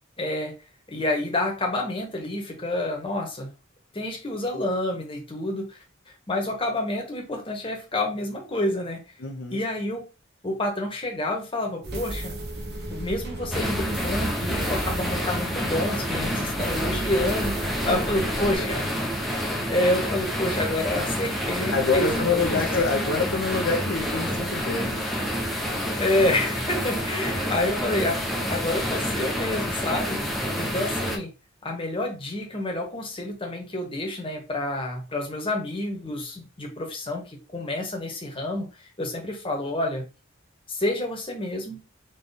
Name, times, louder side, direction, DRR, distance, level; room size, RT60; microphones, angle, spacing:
voice 1, 0.2-0.5 0.9-3.5 3.9-5.8 6.3-9.0 9.5-10.1 10.4-12.3 12.9-18.9 19.7-22.4 22.9-23.0 26.0-30.2 30.5-31.3 31.6-38.7 39.0-40.0 40.7-41.8, left 1 dB, 25° left, 1 dB, 1.2 m, -28 dB
voice 2, 9.2-9.6 17.8-18.0 18.6-18.8 21.7-25.1 30.5-30.8, left 4 dB, 60° left, 1 dB, 0.7 m, -27 dB
sound 1, 11.8-18.6, right 1 dB, 55° right, 1.2 m, -35 dB
sound 2, 13.5-31.2, equal, ahead, 0.8 m, -28 dB
4.1 x 3.2 x 3.4 m, 0.31 s
head